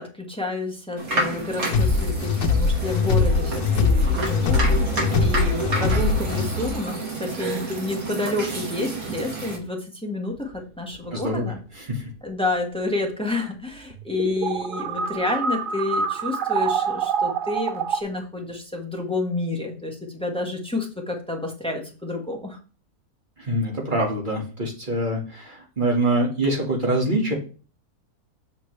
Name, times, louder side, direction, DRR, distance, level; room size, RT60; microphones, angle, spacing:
voice 1, 0.0-4.9 5.2-11.6 12.2-22.6, left 2 dB, 5° left, 1 dB, 1.4 m, -29 dB
sound 1, 1.0-9.6, right 2 dB, 65° right, 2.5 m, -29 dB
sound 2, 1.7-6.8, left 4 dB, 80° left, 1.4 m, -22 dB
sound 3, 10.5-10.6 10.9-11.7 13.9-18.0, right 6 dB, 85° right, 0.4 m, -26 dB
voice 2, 11.1-12.1 23.4-27.3, right 1 dB, 30° right, 1 dB, 1.9 m, -25 dB
7.3 x 6.5 x 3.3 m, 0.37 s
omnidirectional pair, 1.6 m